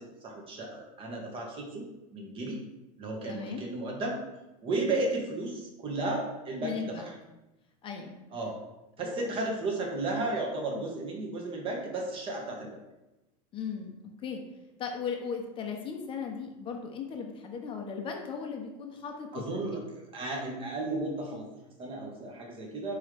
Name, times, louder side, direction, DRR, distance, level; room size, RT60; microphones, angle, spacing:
voice 1, 0.0-2.6 3.0-4.2 4.6-7.1 8.3-8.5 9.0-12.8 19.3-23.0, right 2 dB, 30° right, 0 dB, 1.6 m, -34 dB
voice 2, 3.3-3.6 6.6-7.1 7.8-8.2 9.0-9.3 10.7-10.9 13.5-14.4 14.8-19.8, left 6 dB, 30° left, 3 dB, 0.9 m, -37 dB
8.6 x 3.8 x 3.4 m, 1.0 s
supercardioid pair, 140°, 19 cm